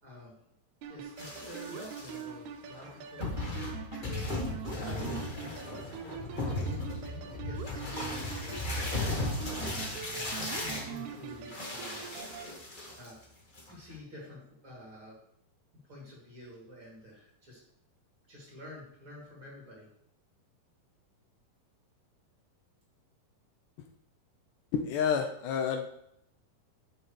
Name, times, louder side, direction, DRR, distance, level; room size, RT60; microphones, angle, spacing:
voice 1, 0.0-0.3 0.9-3.4 4.8-6.1 6.4-9.3 10.1-12.1 13.0-13.2 13.7-15.2 15.7-17.6 18.3-19.9, left 1 dB, 40° right, -4 dB, 3.1 m, -49 dB
sound 1, 0.8-12.5, right 8 dB, 80° right, 1.8 m, -43 dB
sound 2, 1.2-2.2 2.9-3.0 3.2-13.2 13.6-13.9, left 2 dB, 60° left, 0.5 m, -36 dB
voice 2, 24.7-25.9, left 7 dB, 80° left, 4 dB, 2.1 m, -29 dB
11.5 x 5.5 x 3.2 m, 0.75 s
omnidirectional pair, 3.9 m